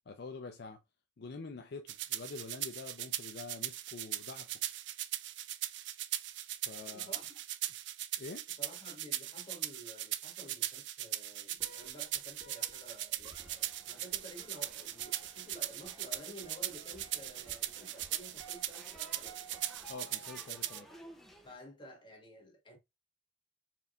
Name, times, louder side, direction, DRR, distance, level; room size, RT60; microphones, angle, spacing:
voice 1, 0.1-0.8 1.2-4.5 6.6-7.1 8.2-8.4 19.9-20.9, left 3 dB, 60° left, 0.4 m, -46 dB
sound 1, 1.9-20.8, right 13 dB, 65° right, 0.4 m, -39 dB
voice 2, 6.8-7.4 8.5-19.7 21.4-22.8, equal, 25° left, 1.6 m, -52 dB
sound 2, 11.6-20.6, right 2 dB, 15° right, 1.9 m, -57 dB
sound 3, 13.4-21.6, equal, ahead, 0.7 m, -58 dB
4.5 x 3.4 x 2.5 m
head